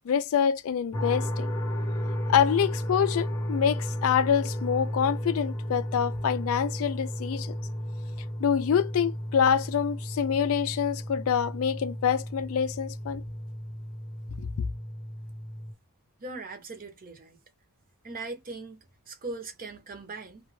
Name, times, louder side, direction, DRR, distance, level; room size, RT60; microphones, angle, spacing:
voice 1, 0.0-1.5 2.3-7.6 8.4-13.2 14.4-14.5, left 7 dB, 65° left, 0.3 m, -26 dB
sound 1, 0.9-15.7, equal, 15° left, 0.8 m, -33 dB
voice 2, 16.2-17.4 18.0-20.4, right 3 dB, 40° right, 0.7 m, -40 dB
2.3 x 2.1 x 3.1 m
head